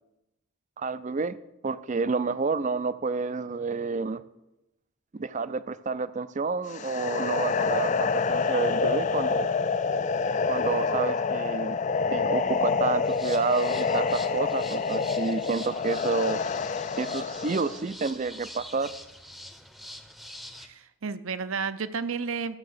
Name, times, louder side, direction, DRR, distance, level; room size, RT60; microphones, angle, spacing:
voice 1, 0.8-1.4 1.6-4.2 5.1-9.5 10.5-11.8 12.1-16.4 17.0-18.9, right 4 dB, 35° right, 15 dB, 0.4 m, -29 dB
sound 1, 6.7-17.8, left 5 dB, 35° left, 0.4 m, -27 dB
sound 2, 13.0-20.7, equal, ahead, 0.7 m, -45 dB
voice 2, 20.6-22.6, right 5 dB, 70° right, 13 dB, 0.7 m, -32 dB
13.5 x 6.8 x 6.6 m, 0.92 s
head